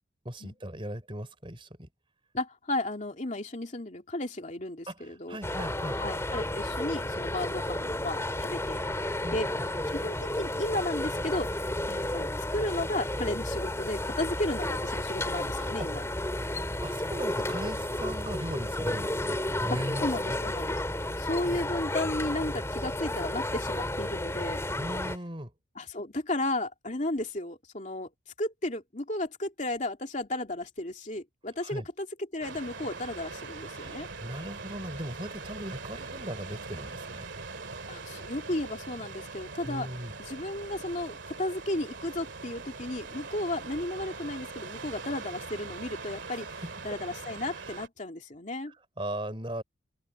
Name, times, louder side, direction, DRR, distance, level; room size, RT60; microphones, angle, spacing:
voice 1, 0.2-1.9 4.9-6.0 9.2-9.7 15.5-15.7 16.8-20.4 24.8-25.5 31.6-31.8 33.6-37.3 39.7-40.2 46.3-46.5 47.7-47.8 48.7-49.6, right 1 dB, 25° right, 3.8 m, -38 dB
voice 2, 2.3-5.4 6.0-8.8 9.3-9.5 9.9-16.0 18.9-19.0 19.7-20.8 21.2-24.6 25.7-28.1 28.4-34.1 37.9-39.9 40.2-48.7, left 1 dB, 40° left, 2.8 m, -34 dB
sound 1, 5.4-25.2, left 1 dB, 15° left, 3.7 m, -32 dB
sound 2, 32.4-47.9, right 4 dB, 65° right, 2.2 m, -42 dB
head